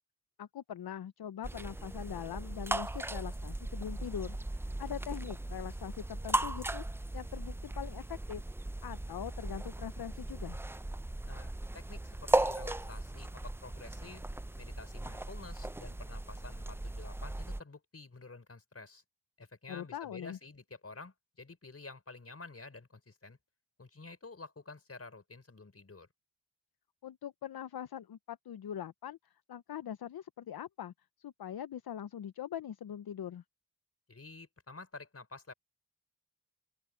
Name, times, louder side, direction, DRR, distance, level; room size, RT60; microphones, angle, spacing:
voice 1, 0.4-8.4 8.8-10.6 19.7-20.4 27.0-30.9 31.2-33.4, left 10 dB, 70° left, 0.7 m, -42 dB
sound 1, 1.4-17.6, right 1 dB, 5° right, 0.4 m, -37 dB
voice 2, 11.3-14.2 14.6-19.0 19.4-23.4 23.8-26.1 34.1-35.5, left 3 dB, 35° left, 4.8 m, -50 dB
open air
wide cardioid pair, 80°, 39 cm